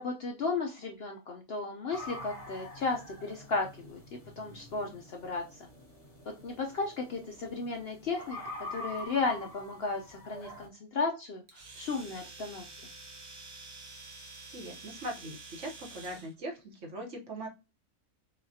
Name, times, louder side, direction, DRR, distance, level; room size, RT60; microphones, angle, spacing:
voice 1, 0.0-4.0 4.4-5.7 6.4-12.7, left 3 dB, 60° left, 2 dB, 0.7 m, -34 dB
sound 1, 1.9-10.7, left 1 dB, 40° left, 2.4 m, -46 dB
Domestic sounds home sounds, 11.5-16.3, right 3 dB, 75° right, 1.5 m, -48 dB
voice 2, 14.5-17.5, right 1 dB, 60° right, 1 dB, 1.3 m, -40 dB
5.6 x 2.4 x 2.6 m, 0.28 s
omnidirectional pair, 1.5 m